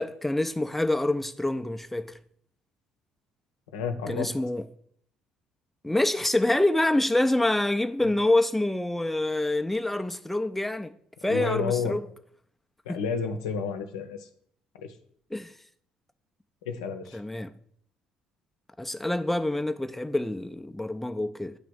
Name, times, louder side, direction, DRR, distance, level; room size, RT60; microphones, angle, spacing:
voice 1, 0.0-2.1 4.1-4.7 5.8-10.9 11.2-12.0 12.9-13.0 15.3-15.5 17.1-17.5 18.8-21.5, left 1 dB, 5° left, 0.5 m, -26 dB
voice 2, 3.7-4.3 11.2-12.0 12.9-14.2 14.8-14.9 16.7-17.2, left 5 dB, 75° left, 0.7 m, -30 dB
9.9 x 3.4 x 6.2 m
figure-of-eight pair, 50°, 3 cm